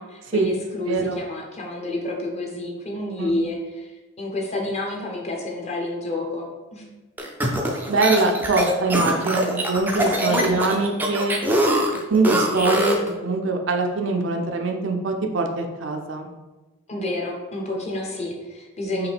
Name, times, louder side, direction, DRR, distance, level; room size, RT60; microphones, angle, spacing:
voice 1, 0.0-6.5 6.7-6.9 10.3-10.5 16.9-19.1, left 1 dB, 30° left, 0 dB, 0.8 m, -29 dB
voice 2, 0.8-1.2 3.2-3.4 7.9-11.4 12.1-13.0 13.2-16.3 18.9-19.1, right 3 dB, 60° right, 3 dB, 0.5 m, -23 dB
sound 1, 7.2-13.1, equal, 10° right, 0.4 m, -23 dB
4.7 x 3.2 x 3.5 m, 1.2 s
head